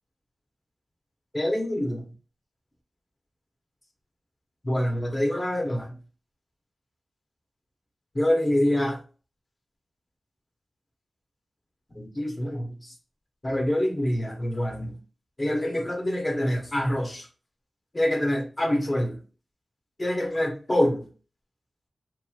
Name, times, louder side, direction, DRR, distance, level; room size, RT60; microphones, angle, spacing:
voice 1, 1.3-2.0 4.6-5.9 8.1-9.0 11.9-12.7 13.4-15.0 15.4-17.3 17.9-19.2 20.0-21.0, left 1 dB, 35° left, 2 dB, 0.9 m, -25 dB
3.0 x 2.6 x 2.3 m, 0.36 s
cardioid pair, 40°, 0 cm